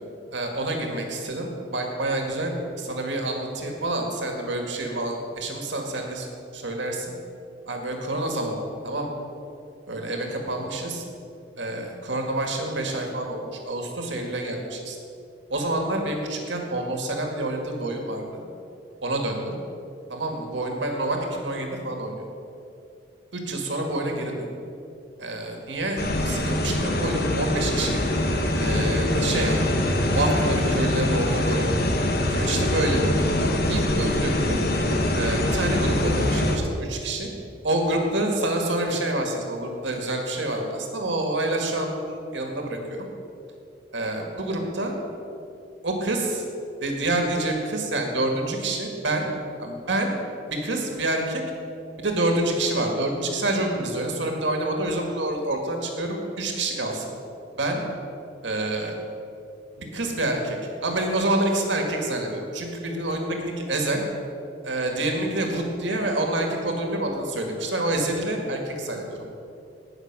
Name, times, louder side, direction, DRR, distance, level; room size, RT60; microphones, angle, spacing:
voice 1, 0.3-6.3 6.5-7.1 7.7-8.6 8.8-9.1 9.9-11.0 11.6-15.0 15.5-18.4 19.0-19.5 20.1-22.1 23.3-24.5 25.2-28.0 28.6-29.6 30.1-31.7 32.3-34.6 35.1-37.3 37.6-43.1 43.9-44.9 45.8-46.4 46.8-49.3 49.6-50.1 50.5-51.4 52.0-57.1 57.6-57.8 58.4-58.9 59.8-64.0 64.6-69.2, right 1 dB, 75° right, 2 dB, 1.9 m, -27 dB
sound 1, 26.0-36.6, left 1 dB, 55° left, 1.3 m, -23 dB
18.5 x 6.5 x 6.0 m, 2.6 s
head